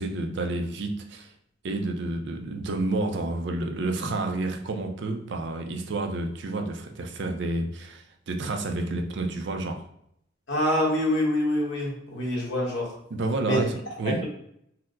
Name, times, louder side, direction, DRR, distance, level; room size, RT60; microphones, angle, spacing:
voice 1, 0.0-1.3 1.6-9.8 13.1-14.2, right 2 dB, 65° right, 4 dB, 0.5 m, -30 dB
voice 2, 10.5-12.9 13.4-13.6 14.2-14.3, left 1 dB, 70° left, -3 dB, 1.1 m, -25 dB
4.2 x 2.0 x 2.5 m, 0.73 s
head